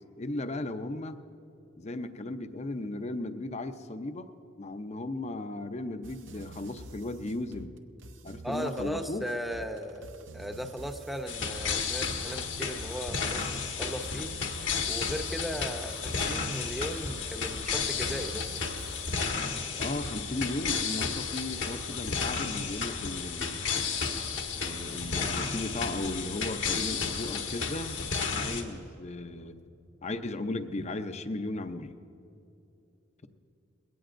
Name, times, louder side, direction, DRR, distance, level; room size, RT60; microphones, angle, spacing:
voice 1, 0.2-1.2 1.8-4.3 4.6-7.7 8.2-9.2 19.8-23.7 24.6-28.0 28.3-29.6 30.0-32.0, left 2 dB, 35° left, 9 dB, 0.6 m, -36 dB
sound 1, 6.0-19.3, right 2 dB, 70° right, 0.8 m, -48 dB
voice 2, 8.4-13.5 13.8-14.3 14.9-18.6, equal, ahead, 5 dB, 0.7 m, -37 dB
sound 2, 11.3-28.6, left 5 dB, 70° left, 1.4 m, -32 dB
21.0 x 17.0 x 2.6 m, 2.7 s
head